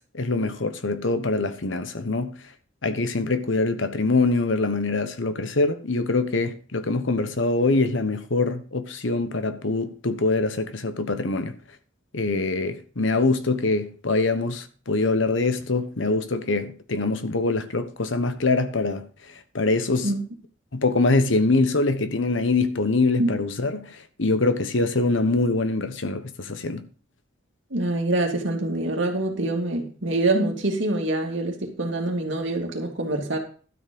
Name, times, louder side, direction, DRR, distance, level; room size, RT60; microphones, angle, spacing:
voice 1, 0.0-2.3 2.8-11.5 12.1-19.1 19.5-20.1 20.7-26.8, left 3 dB, 65° left, 1.2 m, -24 dB
voice 2, 27.7-33.4, right 2 dB, 65° right, 2.5 m, -25 dB
12.5 x 7.2 x 5.3 m
head